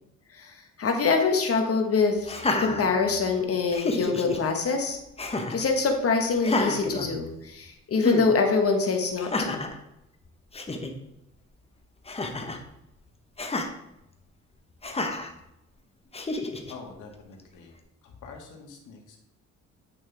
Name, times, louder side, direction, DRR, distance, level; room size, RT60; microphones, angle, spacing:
voice 1, 0.8-2.3 2.6-5.0 5.5-9.6, left 4 dB, 50° left, 4 dB, 1.3 m, -24 dB
Laughter, 2.2-3.3 3.7-4.4 5.2-5.7 6.4-7.6 8.0-8.3 9.2-9.8 10.3-10.4 10.5-10.9 12.0-12.6 13.4-13.7 14.8-15.3 16.1-16.7, left 2 dB, 20° left, 0.9 m, -29 dB
voice 2, 16.7-17.7 18.0-19.2, left 4 dB, 85° left, 2 dB, 1.7 m, -45 dB
8.9 x 5.5 x 3.4 m, 0.87 s
cardioid pair, 90°, 30 cm